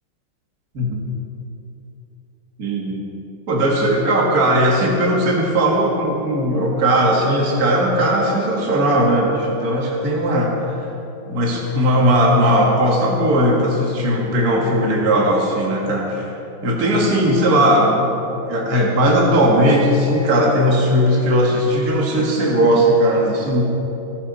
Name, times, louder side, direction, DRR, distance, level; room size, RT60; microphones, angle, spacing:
voice 1, 2.6-3.0 3.5-10.5 11.3-16.3 16.6-18.1 18.5-23.6, equal, 45° right, -2 dB, 2.1 m, -17 dB
15.5 x 14.0 x 4.1 m, 2.9 s
omnidirectional pair, 2.3 m